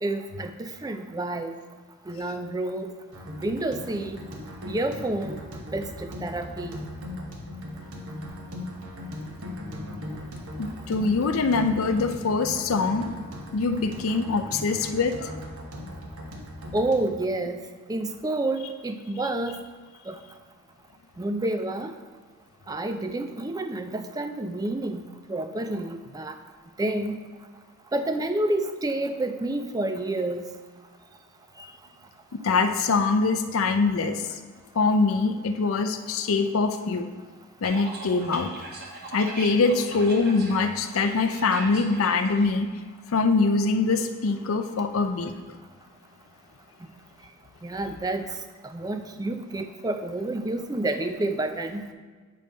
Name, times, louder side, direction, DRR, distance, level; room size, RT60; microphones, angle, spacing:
voice 1, 0.0-1.5 2.1-2.9 3.4-4.2 4.7-5.4 5.7-6.8 16.7-17.6 17.9-19.6 20.1-20.2 21.2-21.9 22.7-26.3 26.8-27.2 27.9-30.4 47.6-48.2 48.6-51.8, right 2 dB, 15° right, 7 dB, 0.4 m, -29 dB
sound 1, 3.1-17.1, left 1 dB, 85° right, 1.2 m, -38 dB
voice 2, 10.6-13.1 13.5-15.3 32.3-34.3 34.8-37.1 37.6-38.5 39.1-42.7 43.1-45.3, left 4 dB, 70° left, 6 dB, 0.5 m, -23 dB
sound 2, 37.6-42.5, right 2 dB, 50° right, 1.1 m, -40 dB
8.5 x 3.2 x 5.1 m, 1.4 s
head